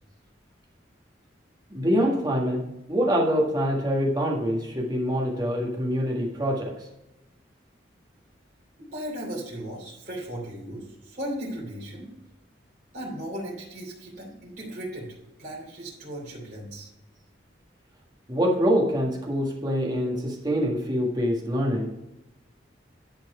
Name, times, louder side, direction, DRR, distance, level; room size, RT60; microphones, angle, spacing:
voice 1, 1.7-2.6 2.9-6.7 18.3-21.9, equal, 20° right, -1 dB, 1.6 m, -25 dB
voice 2, 8.8-12.1 12.9-15.1 15.4-16.9, right 1 dB, 45° right, -6 dB, 3.3 m, -36 dB
11.0 x 4.5 x 4.8 m, 0.93 s
head